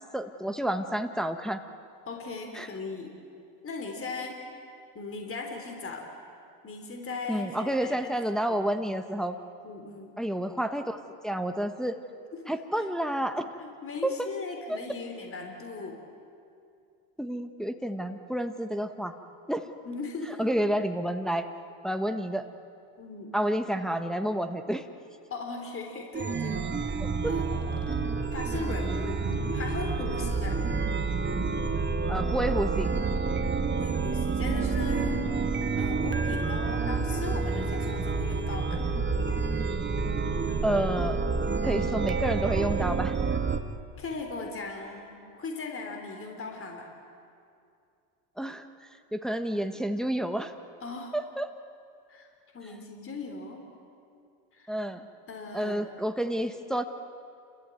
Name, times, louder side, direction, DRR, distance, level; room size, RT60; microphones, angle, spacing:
voice 1, 0.1-1.6 2.6-2.7 7.3-9.4 10.2-11.0 11.2-12.0 12.5-13.5 14.0-14.1 17.2-19.2 19.5-19.7 20.4-21.5 21.8-22.4 23.3-24.8 27.0-27.3 32.1-32.9 40.6-41.2 41.6-43.2 48.4-48.7 49.1-50.5 51.1-51.5 54.7-55.1 55.5-56.8, right 1 dB, ahead, 6 dB, 1.3 m, -29 dB
voice 2, 2.1-3.2 3.6-4.4 5.0-6.1 6.6-8.1 8.5-8.7 9.6-10.1 12.3-12.9 13.6-16.0 19.8-20.5 23.0-23.3 25.3-27.0 27.3-27.9 28.3-30.6 33.7-35.3 35.8-38.8 44.0-46.9 50.8-51.2 52.1-52.3 52.5-53.6 54.5-54.7 55.3-55.9, left 3 dB, 30° left, 3 dB, 3.6 m, -38 dB
Chime, 26.1-43.6, right 4 dB, 25° right, 1.5 m, -28 dB
30.0 x 14.0 x 9.1 m, 2.5 s
supercardioid pair, 90°, 46 cm